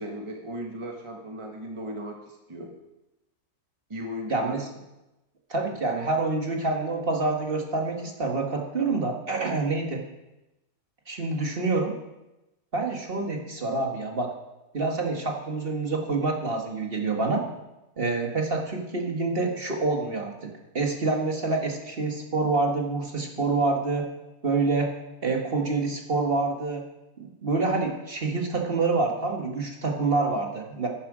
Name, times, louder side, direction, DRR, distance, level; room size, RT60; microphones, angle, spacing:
voice 1, 0.0-2.7 3.9-4.6 5.5-5.8, equal, 20° right, 2 dB, 1.1 m, -37 dB
voice 2, 4.3-4.6 5.5-10.0 11.1-11.9 12.7-14.3 14.7-17.4 18.0-20.5 20.7-24.1 24.4-24.9 25.2-26.8 27.2-30.9, right 3 dB, 40° right, 1 dB, 1.6 m, -27 dB
11.0 x 10.0 x 4.9 m, 0.97 s
omnidirectional pair, 1.7 m